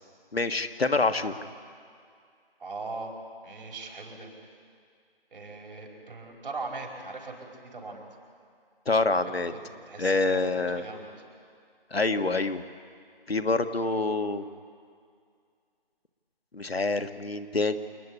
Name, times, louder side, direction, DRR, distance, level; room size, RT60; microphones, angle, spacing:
voice 1, 0.3-1.3 8.9-9.5 10.0-10.8 11.9-12.6 13.3-14.4 16.5-17.7, left 3 dB, 80° left, 8 dB, 1.4 m, -26 dB
voice 2, 2.6-3.1 3.4-4.3 5.3-8.0 9.5-11.1, right 3 dB, 60° right, 0 dB, 4.9 m, -40 dB
28.0 x 9.7 x 9.9 m, 2.2 s
figure-of-eight pair, 155°, 30 cm